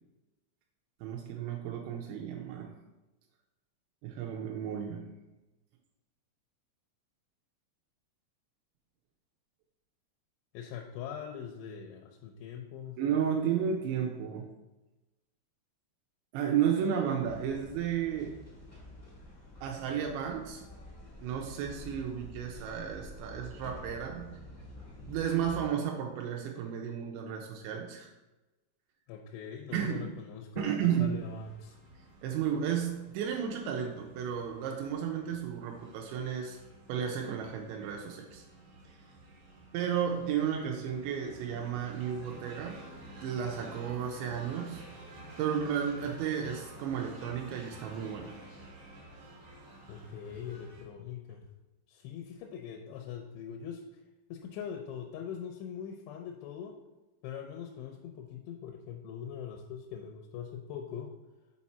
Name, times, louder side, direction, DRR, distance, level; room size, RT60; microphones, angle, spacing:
voice 1, 1.0-2.8 4.0-5.1 13.0-14.5 16.3-18.3 19.6-20.6 21.2-24.4 25.1-28.1 29.7-30.1 30.6-31.2 32.2-36.6 36.9-38.4 38.9-39.0 39.7-42.8 43.2-44.8 45.4-48.4, right 8 dB, 80° right, 1 dB, 2.8 m, -33 dB
voice 2, 10.5-13.0 29.1-31.8 49.9-51.5 51.9-53.8 54.3-56.7 57.2-61.1, left 8 dB, 85° left, 1 dB, 3.0 m, -42 dB
sound 1, 17.2-25.6, left 1 dB, 45° left, 0.7 m, -49 dB
sound 2, 31.2-50.8, right 1 dB, 65° right, 1.4 m, -51 dB
7.2 x 4.4 x 4.3 m, 1.1 s
omnidirectional pair, 5.4 m